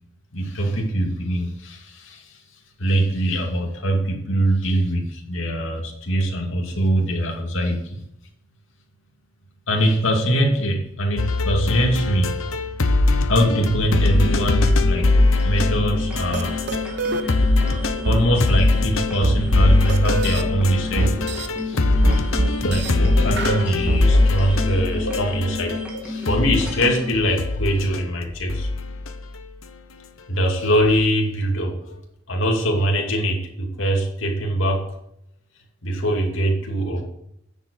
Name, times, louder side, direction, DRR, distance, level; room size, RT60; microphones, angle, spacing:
voice 1, 0.3-2.4 2.8-8.0 9.7-12.3 13.3-15.1 15.4-16.5 17.7-17.8 18.0-21.2 21.7-21.8 22.6-28.7 30.3-32.0 32.3-34.9 35.8-37.0, right 1 dB, 70° left, 1 dB, 2.6 m, -22 dB
sound 1, 11.2-17.0 17.3-25.9 26.2-29.4 30.7-31.0, left 2 dB, 85° left, 1.0 m, -22 dB
sound 2, 14.0-27.2, left 2 dB, 5° right, 2.2 m, -32 dB
sound 3, 16.3-16.4 16.7-17.2 18.1-18.2 19.2-20.4 21.0-21.5 22.0-22.9 23.4-24.0, right 1 dB, 55° right, 0.9 m, -22 dB
9.9 x 7.5 x 6.3 m, 0.77 s
head